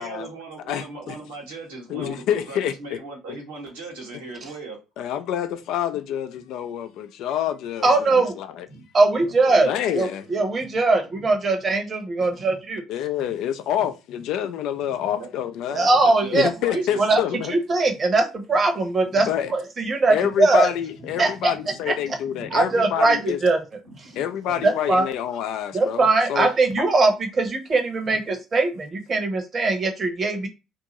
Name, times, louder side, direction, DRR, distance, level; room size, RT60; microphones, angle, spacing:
voice 1, 0.0-4.8 8.7-8.8 9.2-9.3 11.1-11.3 12.4-12.5 13.2-13.3 13.8-13.9 14.8-15.3 15.8-17.6 19.0-19.4 20.2-20.3 20.8-22.8 23.8-24.6 28.1-28.2, right 3 dB, 85° right, 1.2 m, -40 dB
voice 2, 0.7-1.2 1.9-3.0 3.3-3.4 5.0-8.7 9.5-10.3 12.2-12.3 12.9-15.9 16.3-17.5 19.3-19.5 20.1-23.4 24.1-26.5, left 10 dB, 65° left, 0.4 m, -27 dB
voice 3, 7.8-8.3 8.9-12.8 15.7-17.2 17.5-20.7 21.2-21.5 21.9-22.2 22.5-23.6 24.6-25.1 25.7-30.5, right 3 dB, 40° right, 0.9 m, -21 dB
2.6 x 2.6 x 2.9 m
hypercardioid pair, 55°, 0 cm